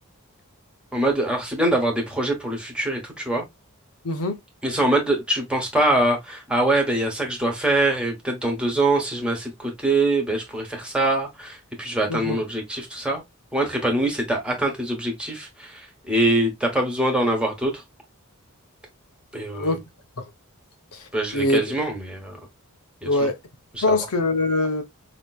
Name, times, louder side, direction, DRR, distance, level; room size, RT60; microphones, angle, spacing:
voice 1, 0.9-3.4 4.6-13.2 13.5-17.8 19.3-19.8 21.1-22.4 23.0-23.3 23.7-24.0, right 1 dB, 5° right, 1.2 m, -24 dB
voice 2, 4.0-4.4 12.1-12.4 19.6-19.8 20.2-20.3 20.9-21.1 21.3-21.6 23.1-23.4 23.8-24.8, left 1 dB, 85° left, 0.9 m, -23 dB
5.1 x 2.9 x 2.3 m
head